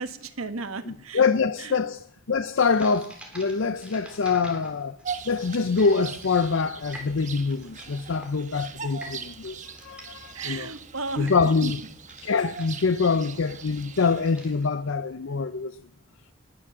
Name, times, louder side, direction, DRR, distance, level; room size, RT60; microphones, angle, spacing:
voice 1, 0.0-1.2 1.6-1.8 10.3-11.3 11.6-11.7, right 3 dB, 90° right, 1.4 m, -34 dB
voice 2, 1.1-2.0 2.3-5.0 5.3-10.7 11.2-11.8 12.2-15.8, left 4 dB, 65° left, 0.6 m, -25 dB
sound 1, 2.7-14.9, right 1 dB, 5° right, 3.4 m, -47 dB
Bird vocalization bird call bird song, 5.0-14.7, right 6 dB, 35° right, 1.1 m, -40 dB
20.0 x 7.1 x 7.3 m
head